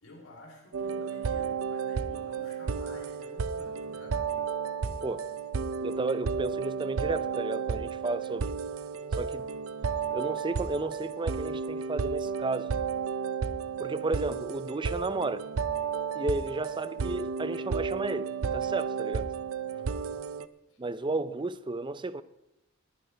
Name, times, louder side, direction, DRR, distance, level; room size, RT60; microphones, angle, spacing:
voice 1, 0.0-4.2 19.7-20.2 20.7-20.8, left 1 dB, 90° left, 3.4 m, -51 dB
sound 1, 0.7-20.5, right 6 dB, 80° right, 0.5 m, -32 dB
voice 2, 5.8-8.5 9.1-9.5 10.1-12.7 13.8-15.4 16.2-19.3 20.8-22.2, right 3 dB, 25° right, 0.5 m, -33 dB
19.5 x 12.0 x 3.4 m
head